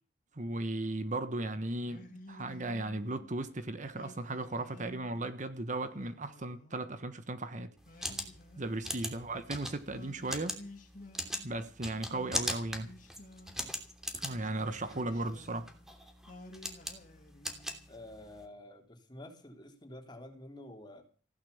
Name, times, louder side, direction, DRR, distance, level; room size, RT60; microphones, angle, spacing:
voice 1, 0.4-7.7 8.6-10.5 11.4-12.9 14.1-15.7, right 2 dB, 45° right, 1.3 m, -36 dB
Singing, 1.8-3.3 3.9-5.3 5.9-7.2 7.8-9.4 9.9-11.7 12.1-13.7 14.2-15.9 16.3-17.9, left 1 dB, 45° left, 3.0 m, -53 dB
sound 1, 7.8-18.4, equal, 5° right, 3.0 m, -40 dB
voice 2, 17.9-21.0, left 1 dB, 25° left, 3.8 m, -49 dB
16.0 x 11.5 x 7.1 m
head